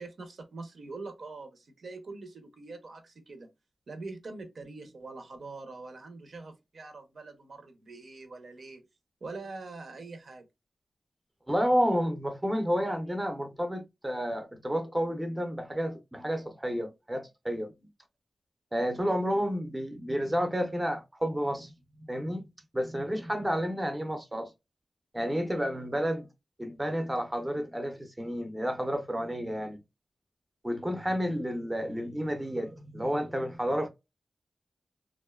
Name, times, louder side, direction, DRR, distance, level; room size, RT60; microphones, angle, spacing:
voice 1, 0.0-3.5 3.9-8.9 9.2-10.5, right 3 dB, 70° right, 0.6 m, -44 dB
voice 2, 11.5-17.7 18.7-21.7 22.1-22.4 22.7-24.5 25.1-26.3 26.6-29.8 30.6-33.9, equal, 15° right, 0.5 m, -30 dB
2.5 x 2.2 x 2.2 m
wide cardioid pair, 75°, 0 cm